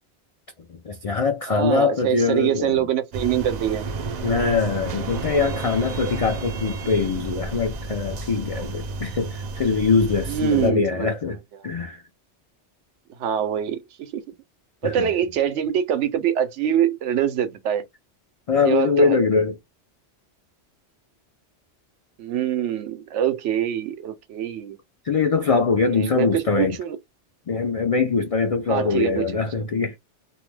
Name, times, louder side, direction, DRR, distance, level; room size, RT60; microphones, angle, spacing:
voice 1, 0.8-2.9 4.2-11.4 11.6-12.0 14.8-15.1 18.5-19.5 25.0-26.8 27.5-30.0, left 4 dB, 65° left, 0.3 m, -22 dB
voice 2, 1.5-3.9 10.3-11.1 13.2-14.2 14.8-17.8 18.6-19.2 22.2-24.8 25.9-27.0 28.7-29.3, right 10 dB, 85° right, 0.9 m, -24 dB
sound 1, 3.1-10.7, right 3 dB, 60° right, 0.4 m, -31 dB
2.4 x 2.1 x 3.1 m
omnidirectional pair, 1.2 m